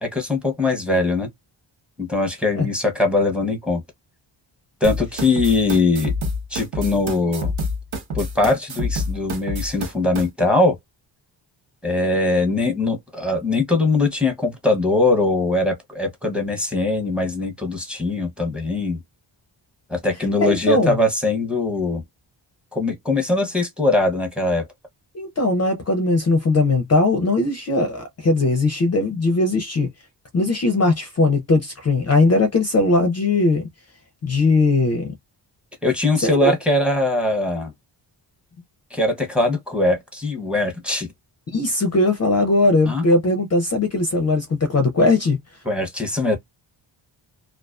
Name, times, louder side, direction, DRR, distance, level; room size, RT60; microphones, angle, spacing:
voice 1, 0.0-1.3 2.0-3.8 4.8-6.1 6.5-7.5 8.1-10.8 11.8-19.0 19.9-22.0 22.7-24.7 35.8-37.7 38.9-41.1 42.9-43.0 45.7-46.4, left 2 dB, ahead, 0.7 m, -21 dB
sound 1, 4.8-10.2, left 1 dB, 80° right, 0.9 m, -27 dB
voice 2, 20.4-21.0 25.1-29.9 30.3-33.7 34.2-35.1 36.3-36.5 41.5-45.4, left 2 dB, 35° left, 0.4 m, -19 dB
2.3 x 2.3 x 2.3 m
wide cardioid pair, 145°, 46 cm